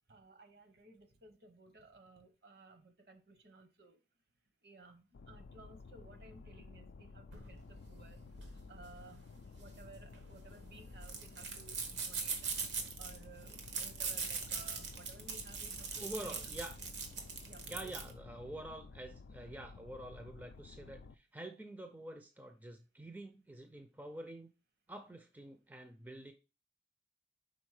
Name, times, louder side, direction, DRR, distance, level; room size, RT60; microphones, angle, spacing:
voice 1, 0.1-4.0 4.6-16.4 17.4-17.9, right 3 dB, 60° right, 8 dB, 0.9 m, -58 dB
sound 1, 5.1-21.2, left 4 dB, 85° left, 0.4 m, -54 dB
sound 2, 7.3-18.1, right 5 dB, 85° right, 1.2 m, -42 dB
voice 2, 16.0-16.8 17.6-24.5 24.9-26.3, right 1 dB, 10° right, 7 dB, 0.4 m, -47 dB
5.3 x 3.9 x 4.8 m, 0.32 s
head